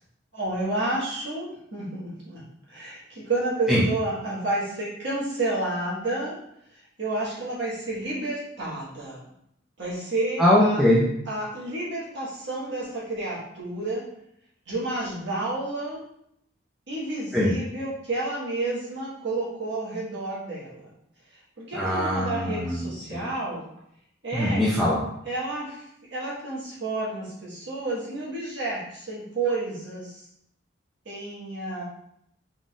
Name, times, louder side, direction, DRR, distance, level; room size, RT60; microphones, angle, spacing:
voice 1, 0.3-1.5 1.7-2.4 2.7-6.3 7.0-9.2 9.8-10.8 11.3-14.0 14.7-16.0 16.9-20.9 21.6-23.7 24.2-24.6 25.2-25.8 26.1-30.3 31.0-31.8, right 2 dB, 60° right, -7 dB, 1.4 m, -30 dB
voice 2, 10.4-11.1 17.3-17.6 21.7-23.2 24.3-25.0, left 1 dB, ahead, -8 dB, 0.5 m, -22 dB
3.8 x 3.7 x 2.4 m, 0.75 s
head